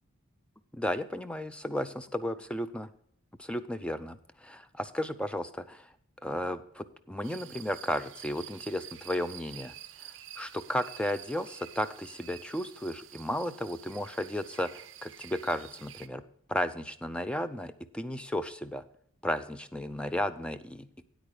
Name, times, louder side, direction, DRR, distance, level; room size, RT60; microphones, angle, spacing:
voice 1, 0.7-2.9 3.4-5.9 6.2-9.7 10.4-16.2 16.5-18.8 19.2-21.0, left 1 dB, 5° left, 12 dB, 0.4 m, -34 dB
sound 1, 7.2-16.1, right 12 dB, 60° right, 0.6 m, -49 dB
9.1 x 8.7 x 4.9 m, 0.67 s
head